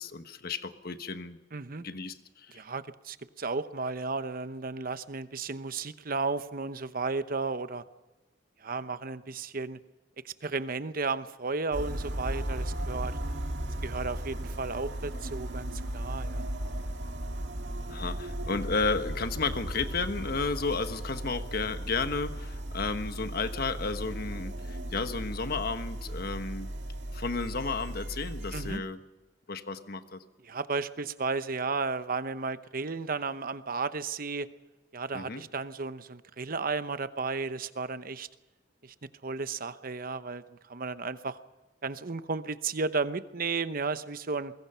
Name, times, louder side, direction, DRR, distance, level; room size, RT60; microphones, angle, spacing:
voice 1, 0.0-1.4 1.8-2.6 17.9-26.7 27.1-29.0 29.5-30.2 35.1-35.4, left 4 dB, 55° left, 9 dB, 1.3 m, -33 dB
voice 2, 1.5-1.8 2.5-7.8 8.6-9.8 10.2-13.2 13.8-16.5 28.5-28.8 30.4-34.5 34.9-38.3 38.8-38.9 39.2-41.4 41.8-44.5, right 4 dB, 50° right, 12 dB, 0.9 m, -33 dB
sound 1, 11.7-28.8, right 1 dB, 70° right, 2.1 m, -36 dB
24.5 x 21.5 x 5.7 m, 1.1 s
head